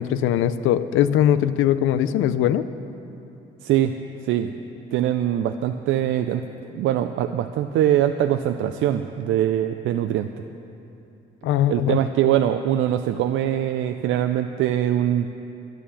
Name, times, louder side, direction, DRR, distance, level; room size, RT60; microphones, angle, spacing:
voice 1, 0.0-2.6 11.4-12.0, left 11 dB, 90° left, 13 dB, 0.5 m, -20 dB
voice 2, 3.6-3.9 4.2-4.5 4.9-6.4 6.7-10.3 11.7-15.3, right 11 dB, 80° right, 7 dB, 0.5 m, -22 dB
11.5 x 10.5 x 7.0 m, 2.9 s
cardioid pair, 90°, 20 cm